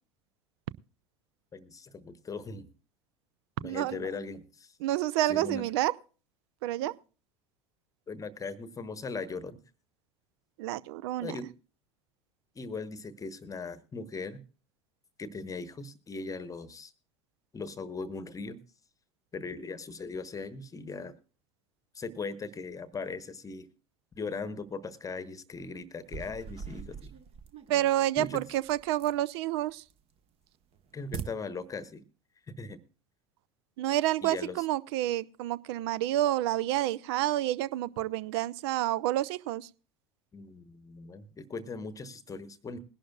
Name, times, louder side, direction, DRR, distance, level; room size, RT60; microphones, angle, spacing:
voice 1, 1.5-2.7 3.6-4.8 5.3-5.7 6.8-7.0 8.1-9.6 11.2-11.5 12.5-14.4 15.2-16.9 17.5-18.6 19.3-21.2 21.9-23.7 24.2-27.1 28.2-28.4 30.9-32.0 32.5-32.8 34.2-34.6 40.3-42.8, left 4 dB, 20° left, 15 dB, 1.0 m, -39 dB
voice 2, 3.6-4.0 4.8-5.9 6.6-6.9 10.6-11.4 27.7-29.8 33.8-39.7, right 14 dB, 55° right, 20 dB, 0.5 m, -29 dB
sound 1, 26.0-29.3 29.7-30.2 30.5-31.2, right 6 dB, 40° right, 1.2 m, -43 dB
21.0 x 11.5 x 2.3 m, 0.36 s
figure-of-eight pair, 70°, 16 cm